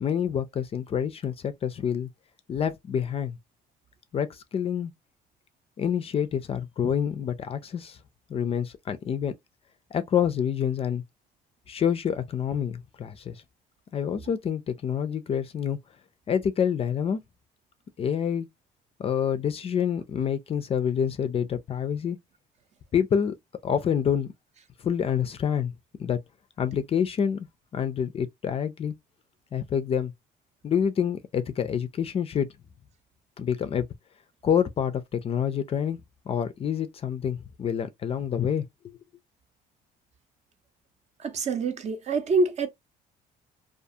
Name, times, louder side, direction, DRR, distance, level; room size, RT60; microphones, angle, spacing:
voice 1, 0.0-2.1 2.5-3.4 4.1-4.9 5.8-8.0 8.3-9.3 9.9-11.0 11.7-13.4 13.9-15.8 16.3-17.2 18.0-18.5 19.0-22.2 22.9-23.3 23.6-24.3 24.8-25.7 26.0-26.2 26.6-27.5 27.7-28.9 29.5-30.1 30.6-32.5 33.4-33.9 34.4-36.0 36.3-39.0, left 8 dB, 35° left, 0.3 m, -27 dB
voice 2, 41.2-42.7, right 3 dB, 40° right, 0.6 m, -25 dB
2.4 x 2.3 x 2.6 m
cardioid pair, 110°, 17 cm